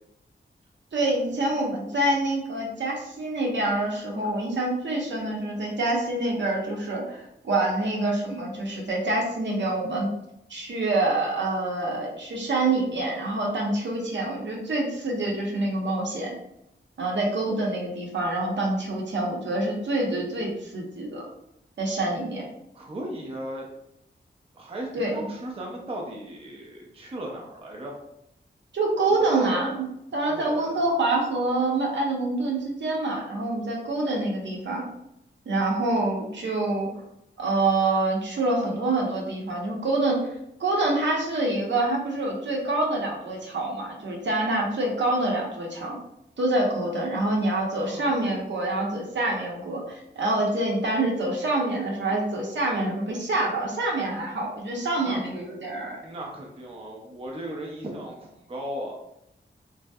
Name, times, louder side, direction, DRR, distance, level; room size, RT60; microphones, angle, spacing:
voice 1, 0.9-10.1 10.5-16.3 17.0-21.2 21.8-22.5 24.9-25.1 28.7-29.8 30.1-34.9 35.5-36.9 37.4-40.2 40.6-46.0 46.4-56.0, right 2 dB, 75° right, -2 dB, 0.7 m, -26 dB
voice 2, 22.7-23.7 24.5-27.9 29.2-29.7 30.3-30.7 47.7-48.1 55.0-55.2 56.0-58.9, right 1 dB, 30° right, -1 dB, 0.5 m, -36 dB
3.1 x 2.7 x 2.3 m, 0.80 s
wide cardioid pair, 135°, 19 cm